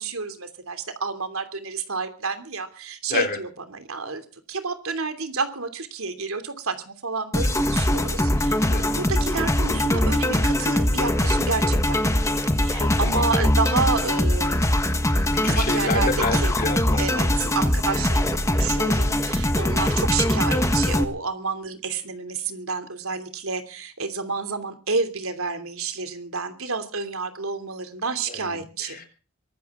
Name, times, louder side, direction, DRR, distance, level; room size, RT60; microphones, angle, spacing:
voice 1, 0.0-8.7 8.9-14.7 15.4-16.5 17.0-29.0, right 4 dB, 75° right, 8 dB, 3.1 m, -30 dB
sound 1, 7.3-21.0, left 1 dB, 15° left, 1.4 m, -22 dB
voice 2, 8.7-9.1 12.8-13.2 15.3-17.6 28.3-29.1, left 3 dB, 40° left, 7 dB, 3.6 m, -30 dB
24.0 x 13.5 x 3.8 m, 0.36 s
head